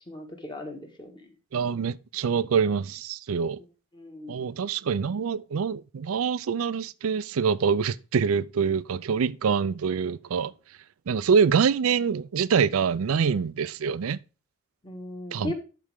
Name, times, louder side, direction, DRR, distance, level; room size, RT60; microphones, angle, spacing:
voice 1, 0.1-1.3 3.9-4.5 14.8-15.5, left 2 dB, 20° left, 1.5 m, -38 dB
voice 2, 1.5-3.6 4.3-10.5 11.1-14.2 15.3-15.5, right 6 dB, 80° right, 0.4 m, -25 dB
11.5 x 4.3 x 3.5 m
head